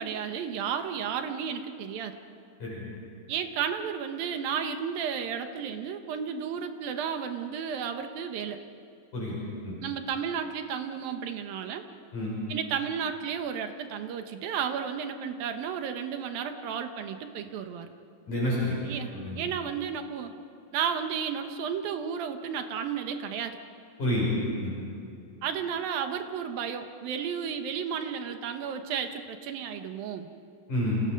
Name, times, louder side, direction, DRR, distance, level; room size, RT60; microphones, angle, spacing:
voice 1, 0.0-2.2 3.3-8.6 9.8-11.8 12.5-17.9 18.8-20.3 20.7-23.6 25.4-30.3, right 7 dB, 65° right, 6 dB, 2.7 m, -33 dB
voice 2, 18.3-18.8 19.1-19.4 24.0-24.3 24.6-24.8 30.7-31.0, left 1 dB, 45° left, -5 dB, 7.6 m, -29 dB
29.5 x 28.0 x 5.3 m, 2.4 s
omnidirectional pair, 4.9 m